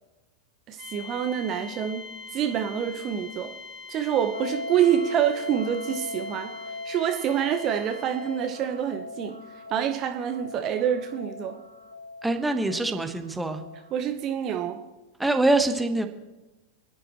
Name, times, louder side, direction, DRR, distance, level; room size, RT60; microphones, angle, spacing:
voice 1, 0.7-3.5 3.9-6.5 6.8-9.4 9.7-11.6 13.9-14.8, right 9 dB, 35° right, 6 dB, 1.0 m, -27 dB
sound 1, 0.8-8.5, left 4 dB, 40° left, 1.8 m, -43 dB
sound 2, 4.3-14.0, left 3 dB, 80° left, 1.2 m, -39 dB
voice 2, 12.2-13.6 15.2-16.1, right 2 dB, 5° right, 6 dB, 1.3 m, -24 dB
29.5 x 10.5 x 3.1 m, 1.1 s
figure-of-eight pair, 90°, 0 cm